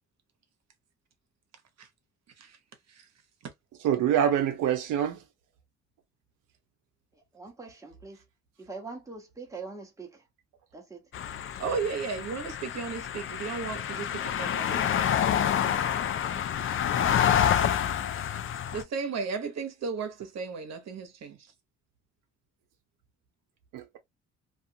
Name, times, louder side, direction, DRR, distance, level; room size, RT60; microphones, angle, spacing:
voice 1, 3.8-5.2 23.7-24.0, right 9 dB, 85° right, 0.6 m, -25 dB
voice 2, 7.1-8.2 8.6-10.3 10.7-11.1 15.6-15.9 16.2-16.6, right 4 dB, 10° right, 1.0 m, -44 dB
sound 1, 11.1-18.8, left 9 dB, 45° left, 0.4 m, -28 dB
voice 3, 11.6-14.8 17.0-17.4 18.7-21.4, right 5 dB, 60° right, 0.9 m, -35 dB
2.4 x 2.4 x 2.7 m
cardioid pair, 90°, 30 cm